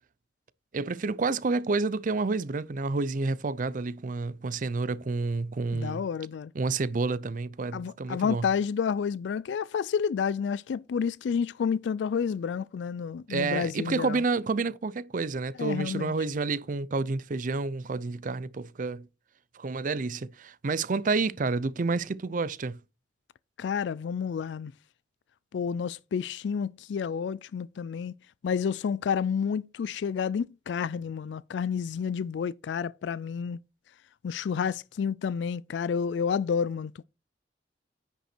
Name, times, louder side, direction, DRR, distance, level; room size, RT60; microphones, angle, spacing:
voice 1, 0.7-6.0 6.5-8.5 13.3-19.1 19.5-22.8, right 3 dB, 50° right, 0.5 m, -29 dB
voice 2, 5.7-6.5 7.7-14.2 15.6-16.1 23.6-24.7 25.5-28.1 28.4-33.6 34.2-37.0, left 6 dB, 80° left, 0.3 m, -30 dB
10.0 x 5.6 x 4.4 m
head